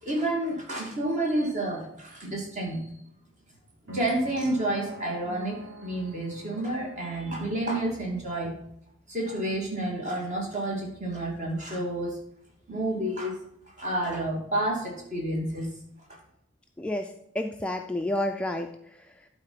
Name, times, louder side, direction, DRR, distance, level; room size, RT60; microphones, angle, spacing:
voice 1, 0.0-2.9 3.9-8.6 9.1-12.2 12.7-13.3 13.8-15.7, right 1 dB, 35° right, -1 dB, 2.5 m, -30 dB
sound 1, 3.9-8.0, right 1 dB, 65° right, 2.0 m, -46 dB
voice 2, 16.8-19.3, left 1 dB, 5° left, 4 dB, 0.4 m, -31 dB
12.0 x 4.1 x 5.8 m, 0.75 s
head